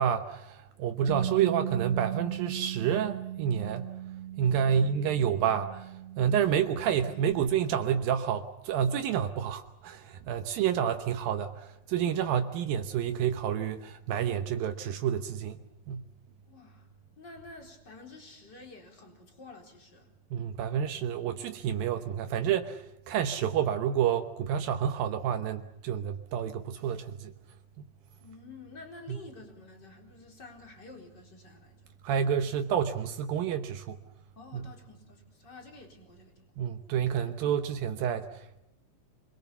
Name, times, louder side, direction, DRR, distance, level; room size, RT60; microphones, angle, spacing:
voice 1, 0.0-3.9 4.4-16.1 20.3-27.3 27.8-27.9 29.1-29.2 32.0-34.0 34.5-34.7 36.6-38.6, right 8 dB, 75° right, 7 dB, 2.8 m, -29 dB
Bass guitar, 1.1-7.3, right 12 dB, 60° right, 4.1 m, -38 dB
voice 2, 16.5-16.9 17.2-20.1 28.2-31.9 34.4-36.3 37.3-37.4, left 3 dB, 30° left, 3 dB, 4.5 m, -50 dB
26.5 x 22.0 x 7.0 m, 0.86 s
omnidirectional pair, 4.3 m